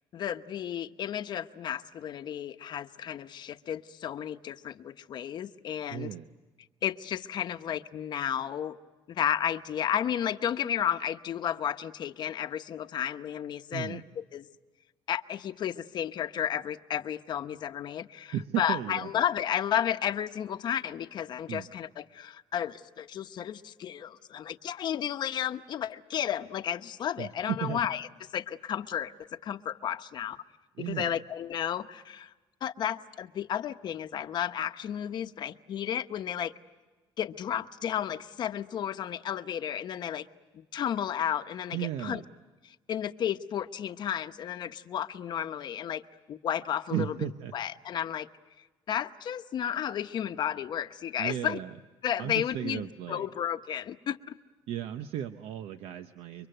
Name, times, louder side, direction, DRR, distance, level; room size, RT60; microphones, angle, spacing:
voice 1, 0.1-6.1 6.8-8.8 9.1-14.0 14.3-14.5 15.1-28.1 28.3-29.1 29.4-30.4 30.9-32.3 32.6-36.5 37.2-40.3 40.5-42.2 42.6-46.0 46.3-47.2 47.5-48.3 48.9-51.6 52.0-54.3, left 9 dB, 50° left, 9 dB, 0.9 m, -32 dB
voice 2, 5.9-6.3 13.7-14.0 18.3-19.1 21.5-21.7 27.2-27.8 30.8-31.2 41.7-42.2 46.9-47.5 51.2-51.7 52.2-53.3 54.7-56.5, right 11 dB, 85° right, 9 dB, 0.9 m, -35 dB
30.0 x 24.0 x 7.9 m, 1.3 s
cardioid pair, 150°, 10 cm